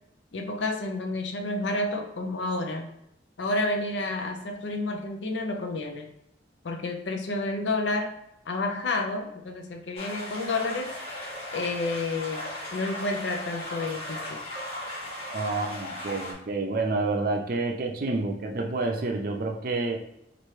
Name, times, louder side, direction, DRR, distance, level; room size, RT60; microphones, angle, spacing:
voice 1, 0.3-2.9 3.4-6.1 6.6-8.1 8.5-11.0 11.2-14.4, left 2 dB, 80° left, 3 dB, 0.6 m, -30 dB
sound 1, 10.0-16.3, left 1 dB, 30° left, 1.1 m, -37 dB
voice 2, 15.3-20.0, right 3 dB, 50° right, 4 dB, 0.5 m, -29 dB
4.3 x 2.6 x 3.1 m, 0.80 s
head